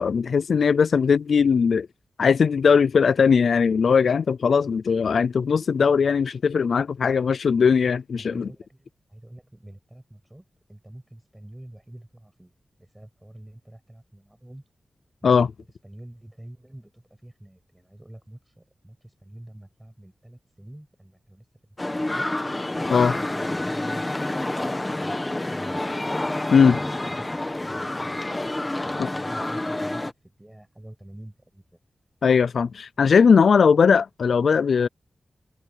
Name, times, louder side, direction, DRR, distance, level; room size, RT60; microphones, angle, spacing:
voice 1, 0.0-1.9 2.2-8.5 15.2-15.5 22.9-23.1 26.5-26.8 29.0-29.1 32.2-34.9, left 6 dB, 75° left, 0.3 m, -19 dB
voice 2, 8.2-12.5 12.8-14.6 15.2-15.4 15.8-21.8 22.1-22.4 23.1-25.8 26.5-28.2 28.8-30.1 30.4-31.8, right 1 dB, 10° right, 7.8 m, -46 dB
sound 1, 21.8-30.1, left 1 dB, 15° left, 1.4 m, -28 dB
wide cardioid pair, 160°, 0 cm